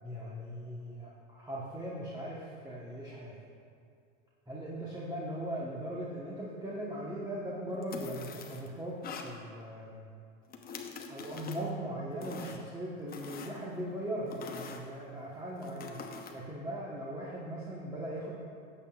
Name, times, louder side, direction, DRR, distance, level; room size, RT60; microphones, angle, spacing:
voice 1, 0.0-3.4 4.5-10.1 11.1-18.3, right 1 dB, 10° right, -6 dB, 1.1 m, -39 dB
sound 1, 7.8-8.7 9.0-9.3 10.5-11.7 12.2-12.7 13.1-13.9 14.3-14.8 15.6-16.3, left 5 dB, 25° left, 0.8 m, -44 dB
13.5 x 8.8 x 2.4 m, 2.4 s
supercardioid pair, 120°, 39 cm